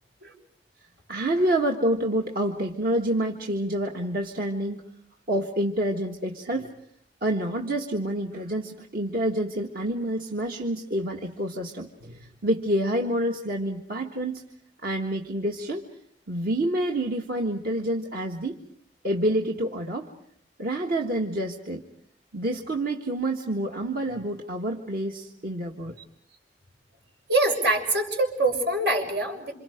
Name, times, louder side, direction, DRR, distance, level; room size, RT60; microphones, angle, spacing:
voice 1, 1.1-4.8 5.3-6.7 7.2-14.4 14.8-15.9 16.3-18.6 19.0-20.1 20.6-21.8 22.3-25.9, right 1 dB, 55° right, 1 dB, 1.6 m, -28 dB
voice 2, 27.3-29.5, right 2 dB, 80° right, 2 dB, 6.2 m, -24 dB
28.5 x 27.0 x 5.1 m, 0.68 s
head